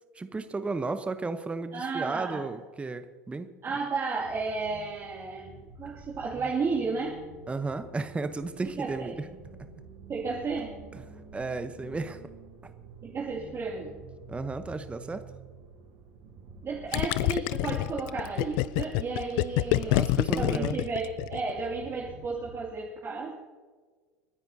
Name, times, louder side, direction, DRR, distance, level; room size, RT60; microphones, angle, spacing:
voice 1, 0.1-3.5 7.5-9.1 10.9-11.0 11.3-12.2 14.3-15.2 19.8-20.8, right 3 dB, 15° right, 10 dB, 0.9 m, -33 dB
voice 2, 1.7-2.5 3.6-7.2 8.8-9.2 10.1-10.8 13.0-14.0 16.6-20.0 20.4-23.3, right 4 dB, 30° right, -4 dB, 2.5 m, -33 dB
sound 1, 4.2-22.6, right 3 dB, 60° right, 5.2 m, -49 dB
Gurgling, 16.9-21.6, left 18 dB, 60° left, 0.4 m, -27 dB
29.5 x 10.0 x 2.8 m, 1.5 s
hypercardioid pair, 85°, 8 cm